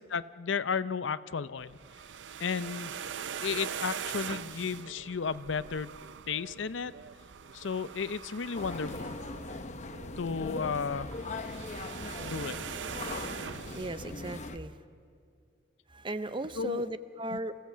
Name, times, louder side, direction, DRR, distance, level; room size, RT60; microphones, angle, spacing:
voice 1, 0.1-1.8 2.4-2.9 3.4-5.9 6.3-6.9 7.5-9.1 10.2-11.1 12.2-12.6 16.6-16.8 17.3-17.4, left 5 dB, 80° left, 15 dB, 0.6 m, -33 dB
sound 1, 1.6-14.5, right 7 dB, 75° right, 0.6 m, -42 dB
sound 2, 8.5-14.6, left 2 dB, 40° left, 0.8 m, -40 dB
voice 2, 13.7-14.7 15.9-17.6, right 1 dB, 25° right, 13 dB, 0.6 m, -36 dB
28.0 x 16.0 x 7.4 m, 2.3 s
head